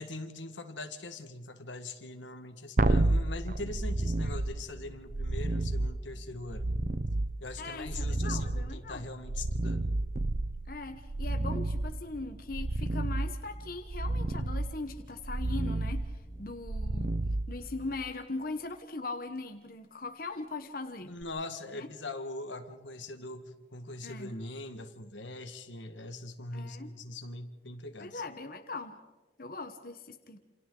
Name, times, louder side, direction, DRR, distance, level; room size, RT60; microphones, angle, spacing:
voice 1, 0.0-6.7 7.4-9.9 21.1-28.2, left 2 dB, 90° left, 7 dB, 1.7 m, -42 dB
sound 1, 2.8-18.1 21.2-21.3, right 2 dB, 45° right, 0.7 m, -31 dB
voice 2, 7.6-9.1 10.7-16.0 16.4-17.1 17.5-21.1 21.7-21.9 24.0-24.4 26.5-26.9 28.0-29.0 29.4-30.4, left 3 dB, 50° left, 6 dB, 1.2 m, -40 dB
28.0 x 27.5 x 3.9 m, 1.2 s
head